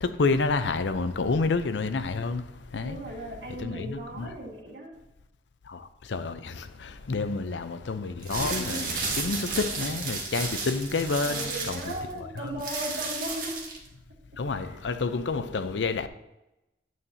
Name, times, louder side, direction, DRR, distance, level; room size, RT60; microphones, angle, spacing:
voice 1, 0.0-2.4 2.7-3.0 3.6-4.3 6.1-6.6 7.1-11.9 12.4-12.5 14.4-16.1, left 3 dB, 85° left, 0.6 m, -29 dB
voice 2, 2.8-4.9 8.4-8.9 11.2-13.6 14.5-14.8, right 1 dB, 75° right, 2.2 m, -37 dB
sound 1, 8.1-13.9, right 4 dB, 50° right, 1.7 m, -33 dB
9.3 x 7.3 x 2.8 m
head